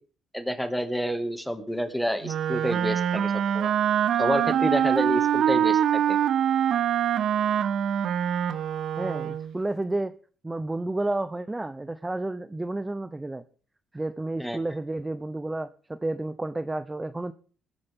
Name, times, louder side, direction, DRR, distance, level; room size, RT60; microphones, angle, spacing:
voice 1, 0.3-3.7 4.2-6.2 14.4-14.6, equal, 5° left, 8 dB, 2.1 m, -29 dB
Wind instrument woodwind instrument, 2.2-9.6, right 9 dB, 70° right, 0.7 m, -24 dB
voice 2, 9.0-10.1 10.4-13.4 13.9-17.3, right 2 dB, 15° right, 13 dB, 0.6 m, -31 dB
21.0 x 10.0 x 3.6 m, 0.41 s
cardioid pair, 90°, 0 cm